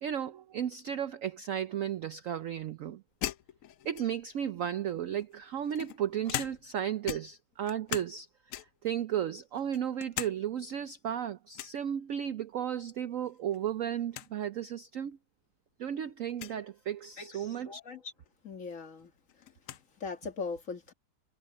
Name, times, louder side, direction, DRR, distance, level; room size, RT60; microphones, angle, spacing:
voice 1, 0.0-3.0 3.8-8.3 8.5-15.2 15.8-17.8, right 9 dB, 70° right, 0.7 m, -34 dB
sound 1, 3.2-4.4 5.2-6.8 7.0-8.2 8.5-8.9 9.4-10.4 10.7-10.8 11.5-11.8 13.2-13.6 13.9-14.0 14.1-14.3 15.1-15.2 16.3-16.6 18.3-18.4 18.7-19.8, left 12 dB, 80° left, 0.7 m, -40 dB
voice 2, 17.2-18.1 18.4-19.1 20.0-20.9, left 4 dB, 45° left, 1.9 m, -40 dB
omnidirectional pair, 2.1 m